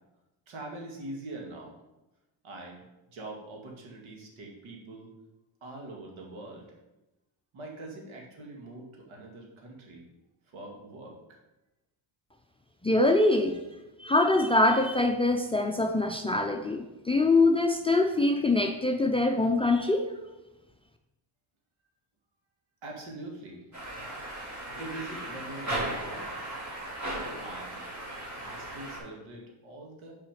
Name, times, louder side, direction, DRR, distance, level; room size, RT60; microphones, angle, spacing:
voice 1, 0.5-1.8 2.4-2.9 3.1-5.1 5.6-6.7 7.5-10.1 10.5-11.4 22.8-23.6 24.7-26.4 27.4-27.9 28.4-30.2, right 2 dB, 75° right, 0 dB, 2.0 m, -43 dB
voice 2, 12.8-13.7 14.0-20.1, left 2 dB, 10° left, 5 dB, 0.4 m, -24 dB
sound 1, 23.7-29.0, right 1 dB, 35° right, 2.7 m, -36 dB
5.9 x 4.9 x 5.0 m, 0.99 s
cardioid pair, 100°, 48 cm